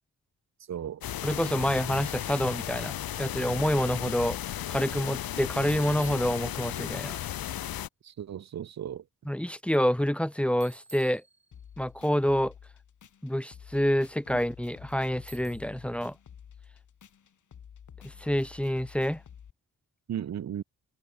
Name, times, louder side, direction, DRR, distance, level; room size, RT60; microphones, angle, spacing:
voice 1, 0.7-1.0 8.0-9.0 20.1-20.6, right 9 dB, 50° right, 0.6 m, -35 dB
sound 1, 1.0-7.9, left 11 dB, 85° left, 0.8 m, -35 dB
voice 2, 1.2-2.9 3.2-4.4 4.7-7.2 9.3-11.2 11.8-12.5 13.2-16.2 18.0-19.2, equal, 5° left, 0.9 m, -27 dB
Bicycle, 1.9-2.4 5.7-6.9 10.6-11.9 15.3-15.9, right 3 dB, 20° right, 2.2 m, -53 dB
sound 2, 11.5-19.5, left 8 dB, 55° left, 1.6 m, -51 dB
wide cardioid pair, 155°, 35 cm